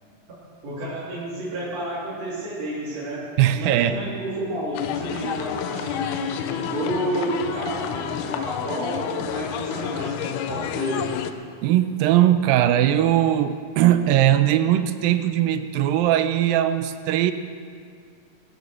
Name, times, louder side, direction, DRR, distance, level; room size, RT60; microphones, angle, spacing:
voice 1, 0.6-3.2 3.5-11.1, right 1 dB, 50° right, -9 dB, 4.1 m, -30 dB
voice 2, 3.4-4.1 11.6-17.3, right 12 dB, 85° right, 10 dB, 2.5 m, -20 dB
sound 1, 4.7-11.3, left 10 dB, 80° left, 2.0 m, -30 dB
20.0 x 10.5 x 6.4 m, 2.2 s
omnidirectional pair, 4.0 m